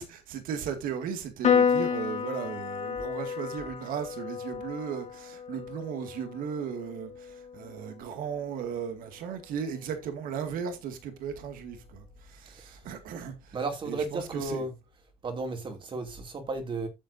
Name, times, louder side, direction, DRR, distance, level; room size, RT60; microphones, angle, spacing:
voice 1, 0.0-13.6 13.9-14.6, right 7 dB, 65° right, 2.1 m, -36 dB
Piano, 1.4-8.1, left 7 dB, 45° left, 2.7 m, -31 dB
voice 2, 12.5-12.8 13.5-14.7 15.2-16.9, right 3 dB, 30° right, 2.6 m, -34 dB
13.0 x 7.5 x 2.6 m
cardioid pair, 135°, 15 cm